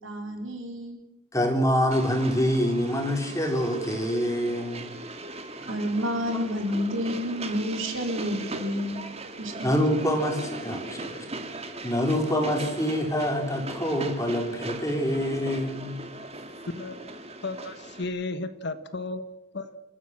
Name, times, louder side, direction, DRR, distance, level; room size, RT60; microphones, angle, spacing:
voice 1, 0.0-1.0 5.7-9.0 9.4-9.5, equal, 60° right, 3 dB, 4.6 m, -29 dB
voice 2, 1.3-4.9 9.6-11.3 11.8-16.0, equal, 15° left, 3 dB, 4.1 m, -26 dB
Train, 1.9-18.0, right 2 dB, 30° right, 2.0 m, -39 dB
voice 3, 17.4-19.7, left 3 dB, 50° left, 11 dB, 1.3 m, -34 dB
28.5 x 14.5 x 7.6 m, 0.97 s
head